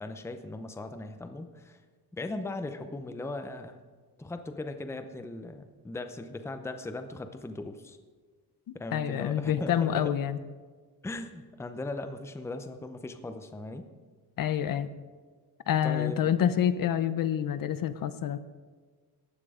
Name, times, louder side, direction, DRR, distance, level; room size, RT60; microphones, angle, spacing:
voice 1, 0.0-1.8 2.1-3.8 4.2-8.0 8.7-10.1 11.0-13.9 15.8-16.4, left 2 dB, 5° left, 8 dB, 0.6 m, -38 dB
voice 2, 8.7-10.4 14.4-14.9 15.7-18.4, left 9 dB, 60° left, 12 dB, 0.7 m, -27 dB
15.0 x 9.8 x 4.9 m, 1.5 s
wide cardioid pair, 160°, 39 cm